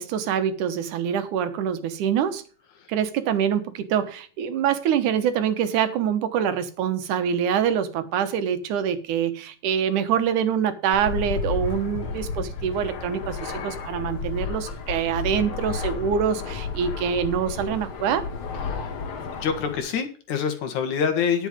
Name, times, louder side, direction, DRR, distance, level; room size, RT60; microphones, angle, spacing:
voice 1, 0.0-2.4 2.9-18.3, right 8 dB, 85° right, 2.7 m, -25 dB
Fixed-wing aircraft airplane, 10.9-19.8, left 5 dB, 60° left, 2.5 m, -32 dB
voice 2, 19.4-21.5, left 7 dB, 75° left, 3.0 m, -26 dB
10.5 x 8.0 x 5.2 m
omnidirectional pair, 3.4 m